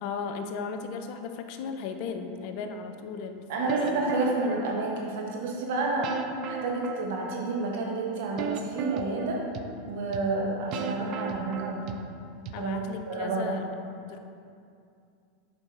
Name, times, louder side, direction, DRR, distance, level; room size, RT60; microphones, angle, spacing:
voice 1, 0.0-4.0 12.5-13.7 14.1-14.2, left 5 dB, 60° left, 7 dB, 0.5 m, -36 dB
voice 2, 3.5-9.4 9.9-12.1 12.6-12.7 13.1-13.7, right 3 dB, 65° right, -1 dB, 1.2 m, -30 dB
sound 1, 3.7-5.1 6.0-7.7 8.4-9.6 10.1-10.2 10.7-12.1 12.5-12.6, right 7 dB, 50° right, 0.4 m, -35 dB
7.1 x 5.3 x 3.2 m, 2.4 s
hypercardioid pair, 95°, 0 cm